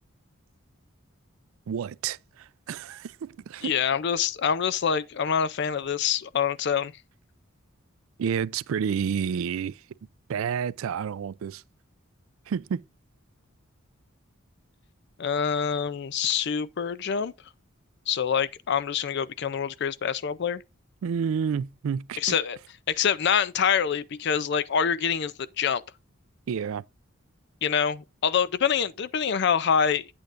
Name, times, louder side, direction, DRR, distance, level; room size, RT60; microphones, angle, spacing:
voice 1, 1.7-3.8 8.2-9.8 10.3-11.6 12.5-12.8 21.0-22.2 26.5-26.8, right 7 dB, 75° right, 0.3 m, -30 dB
voice 2, 3.6-6.9 15.2-17.3 18.1-20.6 22.2-22.6 22.9-25.8 27.6-30.1, left 7 dB, 55° left, 0.4 m, -26 dB
9.2 x 8.6 x 2.5 m
head